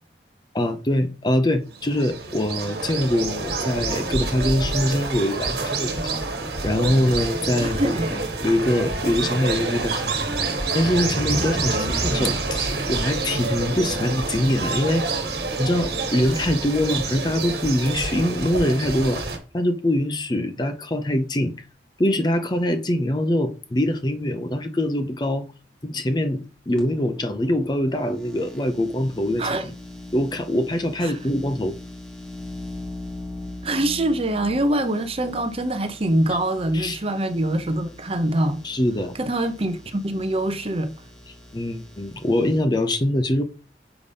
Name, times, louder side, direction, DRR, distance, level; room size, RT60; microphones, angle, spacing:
voice 1, 0.5-6.2 6.6-10.1 10.7-15.0 15.6-19.2 19.5-21.5 22.0-25.5 25.8-29.7 30.1-31.7 36.3-36.4 36.7-37.0 38.6-39.1 41.5-43.4, left 1 dB, 25° left, 0.6 m, -23 dB
sound 1, 1.7-19.4, right 3 dB, 60° right, 1.5 m, -27 dB
voice 2, 7.6-8.1 11.7-12.4 29.4-29.7 31.0-31.1 33.6-38.6 39.1-40.9, right 1 dB, 30° right, 0.7 m, -24 dB
sound 2, 26.8-42.6, left 2 dB, 5° left, 1.4 m, -41 dB
7.0 x 3.4 x 5.3 m
head